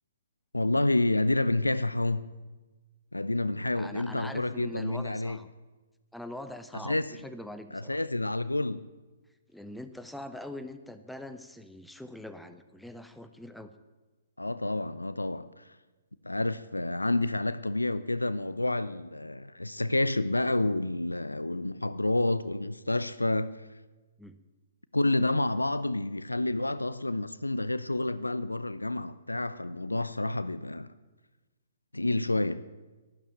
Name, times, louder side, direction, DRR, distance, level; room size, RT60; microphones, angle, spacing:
voice 1, 0.5-2.3 3.1-5.4 6.8-7.0 7.7-8.9 14.4-15.6 16.2-23.5 24.9-30.9 31.9-32.6, left 2 dB, 80° left, 0.6 m, -29 dB
voice 2, 3.7-5.5 6.1-8.0 9.5-13.7 24.2-24.4, left 1 dB, ahead, 0.8 m, -43 dB
12.0 x 11.5 x 8.9 m
figure-of-eight pair, 125°, 0 cm